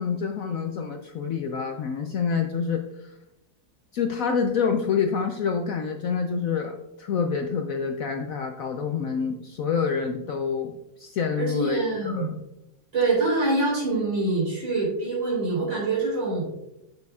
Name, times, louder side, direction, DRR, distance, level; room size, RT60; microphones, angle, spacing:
voice 1, 0.0-2.8 3.9-10.7 11.0-12.3, left 6 dB, 75° left, 4 dB, 0.7 m, -27 dB
voice 2, 11.4-12.3 12.9-16.5, right 3 dB, 75° right, -6 dB, 4.1 m, -25 dB
10.5 x 6.8 x 2.4 m, 0.89 s
omnidirectional pair, 2.1 m